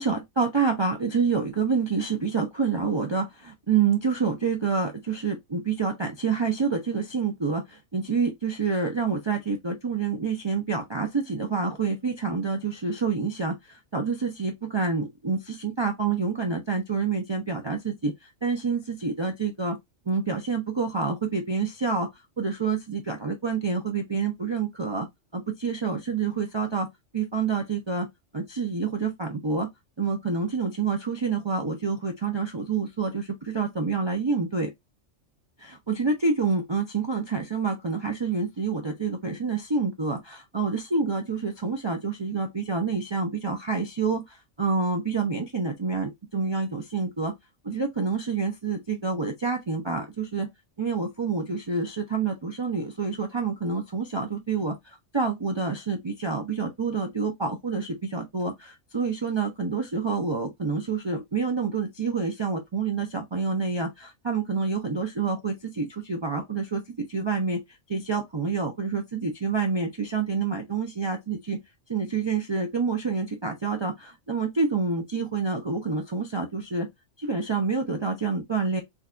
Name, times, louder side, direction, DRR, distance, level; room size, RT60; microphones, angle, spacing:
voice 1, 0.0-19.8 20.1-22.1 22.4-25.1 25.3-26.9 27.1-28.1 28.3-29.7 30.0-34.7 35.6-47.3 47.6-50.5 50.8-66.8 67.1-67.6 67.9-71.6 71.9-76.9 77.2-78.8, right 4 dB, 50° right, 0.3 m, -28 dB
3.9 x 2.2 x 2.4 m
omnidirectional pair, 1.3 m